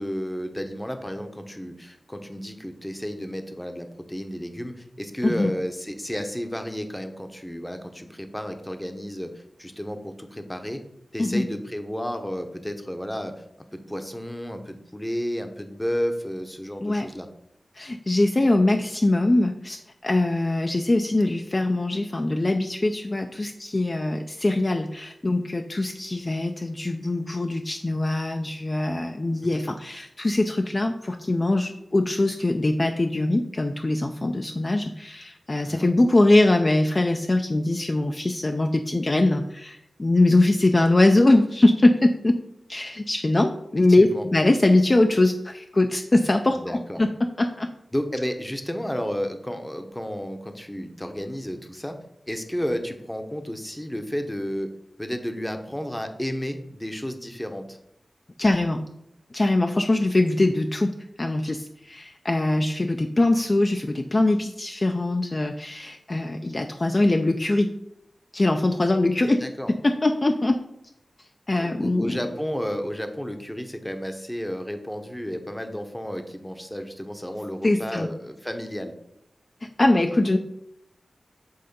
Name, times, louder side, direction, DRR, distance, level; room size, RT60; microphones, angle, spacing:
voice 1, 0.0-10.8 11.1-13.3 13.7-17.3 29.5-29.6 35.6-35.9 43.9-44.2 46.5-47.0 47.9-52.0 52.3-54.7 55.0-57.8 69.4-69.7 71.6-78.9, equal, 10° left, 6 dB, 0.8 m, -32 dB
voice 2, 17.8-42.4 42.7-47.7 58.4-58.8 59.3-60.9 61.2-67.7 68.3-69.4 69.8-70.6 71.5-72.2 77.6-78.1 79.6-80.4, left 2 dB, 30° left, 4 dB, 0.4 m, -22 dB
7.9 x 3.7 x 5.3 m, 0.79 s
wide cardioid pair, 110°, 0 cm